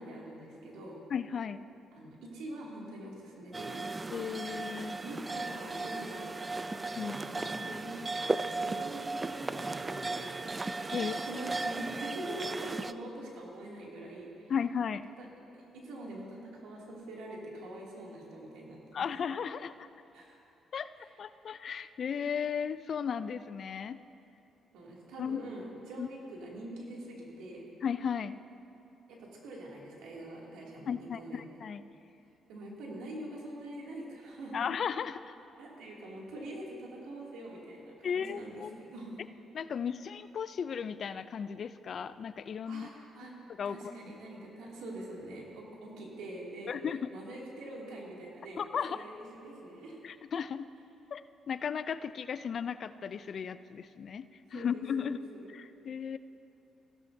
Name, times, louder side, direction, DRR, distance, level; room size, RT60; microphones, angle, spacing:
voice 1, 0.0-1.0 1.9-3.9 5.0-6.6 7.1-10.6 10.9-14.5 15.2-15.3 15.5-19.1 20.1-20.4 20.9-21.1 24.7-27.7 29.1-31.4 32.5-34.6 35.6-39.2 42.7-43.3 43.7-46.8 47.1-50.0 54.5-55.5, right 1 dB, 90° right, -3 dB, 2.4 m, -44 dB
voice 2, 1.1-1.6 4.1-5.0 7.0-7.2 10.9-11.2 14.5-15.0 18.9-19.9 20.7-20.9 21.2-24.0 25.2-25.5 26.0-26.1 27.8-28.4 30.9-31.8 34.5-35.3 38.0-38.7 39.5-42.9 43.6-43.8 46.7-47.1 48.6-49.0 50.0-50.7 51.1-54.2 54.5-55.2 55.5-56.2, left 7 dB, 55° left, 14 dB, 0.4 m, -35 dB
sound 1, 3.5-12.9, right 3 dB, 25° right, 0.3 m, -36 dB
16.5 x 13.0 x 2.7 m, 2.8 s
cardioid pair, 90°, 0 cm